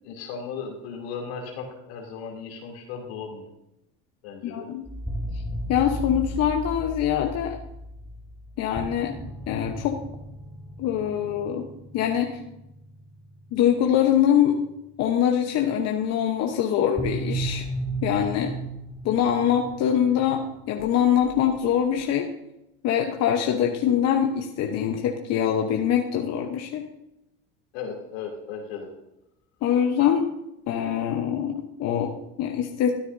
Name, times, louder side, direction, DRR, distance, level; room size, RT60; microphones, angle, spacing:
voice 1, 0.0-3.5 4.2-4.7 27.7-28.9, left 6 dB, 85° left, 0 dB, 2.9 m, -36 dB
voice 2, 4.4-4.8 5.7-7.6 8.6-9.1 9.5-10.0 10.8-11.7 11.9-12.4 13.5-14.6 15.0-17.7 18.0-18.5 19.0-22.3 22.8-26.9 29.6-30.2 30.7-32.1 32.4-33.0, left 9 dB, 55° left, 3 dB, 1.0 m, -23 dB
sound 1, 4.9-15.0 17.0-22.0, right 1 dB, ahead, 1.0 m, -36 dB
13.0 x 9.8 x 2.7 m, 0.87 s
supercardioid pair, 100°, 30 cm